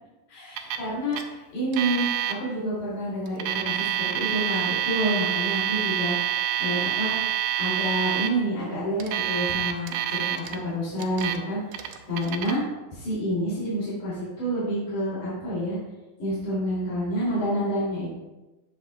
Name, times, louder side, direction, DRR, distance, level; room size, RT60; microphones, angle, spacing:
voice 1, 0.3-2.1 2.4-7.1 7.6-10.2 10.5-12.6 12.9-15.8 16.2-18.1, equal, 70° left, -9 dB, 4.1 m, -28 dB
Alarm, 0.6-0.9 1.1-1.2 1.7-2.3 3.3-8.3 9.0-10.6 11.0-11.4 11.7-12.5, right 11 dB, 80° right, 2.0 m, -27 dB
9.3 x 7.8 x 2.3 m, 1.1 s
omnidirectional pair, 3.5 m